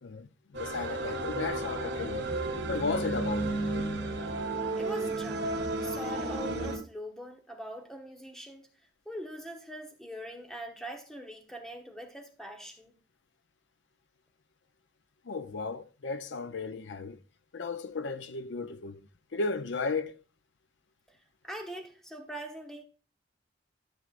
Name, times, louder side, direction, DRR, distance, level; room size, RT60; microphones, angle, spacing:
voice 1, 0.0-2.3 2.7-3.6 15.2-17.2 17.5-19.0 19.3-20.1, left 4 dB, 70° left, 0.6 m, -34 dB
sound 1, 0.5-6.8, right 2 dB, 65° right, 1.7 m, -33 dB
voice 2, 4.8-8.7 9.0-12.9 21.1-21.2 21.4-22.8, equal, ahead, 1.1 m, -42 dB
12.5 x 6.4 x 2.5 m
head